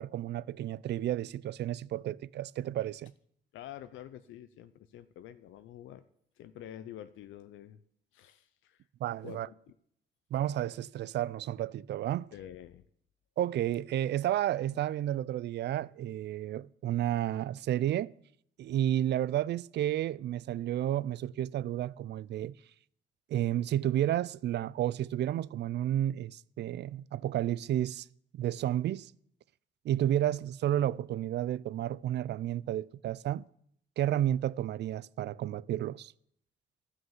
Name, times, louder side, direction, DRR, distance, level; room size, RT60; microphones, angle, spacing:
voice 1, 0.0-3.1 9.0-9.5 10.3-12.3 13.4-18.1 18.6-22.5 23.3-28.1 28.3-29.1 29.8-33.4 34.0-36.1, right 12 dB, 60° right, 0.4 m, -31 dB
voice 2, 3.5-6.0 6.4-7.8 8.1-8.8 9.2-9.7 12.3-12.8, left 11 dB, 80° left, 0.6 m, -48 dB
13.0 x 6.3 x 7.2 m
cardioid pair, 90°, 20 cm